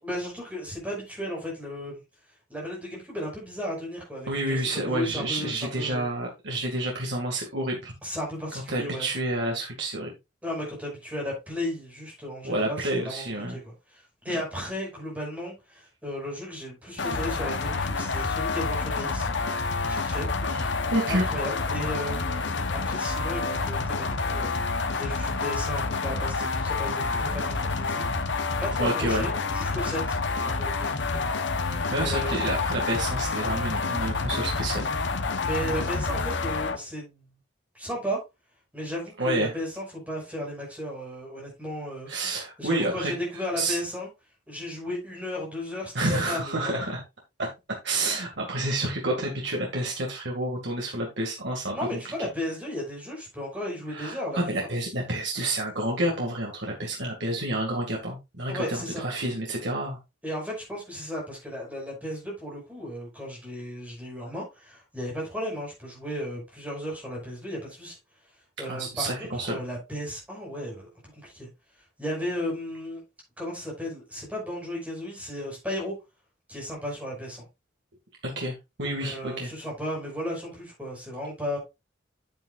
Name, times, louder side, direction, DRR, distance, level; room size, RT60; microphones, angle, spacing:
voice 1, 0.0-2.0 2.5-6.1 8.0-9.1 10.4-19.3 19.9-20.3 21.1-31.2 32.0-32.6 35.4-37.3 37.7-38.2 38.7-42.1 42.6-44.1 44.5-46.8 51.7-54.7 58.5-59.0 60.2-68.0 68.6-70.9 71.2-71.5 72.0-73.0 73.4-75.9 76.5-77.5 79.0-81.6, equal, 10° right, 5.4 m, -35 dB
voice 2, 4.3-7.9 8.7-10.1 12.4-13.6 20.4-21.3 28.1-28.2 28.8-29.3 31.9-34.8 39.2-39.5 42.1-43.1 43.6-43.8 45.9-47.0 47.4-47.5 47.8-52.0 53.9-60.0 68.7-69.6 78.4-79.5, right 1 dB, 75° right, 2.2 m, -29 dB
sound 1, 17.0-36.8, left 4 dB, 75° left, 1.0 m, -28 dB
9.0 x 9.0 x 2.5 m
head